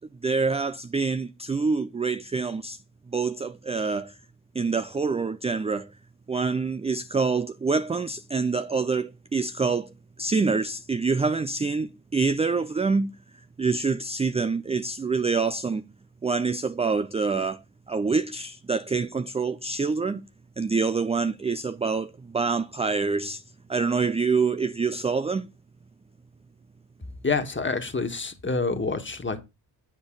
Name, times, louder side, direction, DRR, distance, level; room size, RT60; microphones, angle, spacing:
voice 1, 0.2-2.8 3.1-4.2 4.5-5.9 6.3-9.9 10.2-13.1 13.6-15.8 16.2-20.3 20.6-23.4 23.7-25.5, right 4 dB, 15° right, 0.4 m, -26 dB
voice 2, 27.2-29.4, left 4 dB, 25° left, 1.7 m, -27 dB
7.9 x 6.6 x 3.8 m
hypercardioid pair, 40°, 49 cm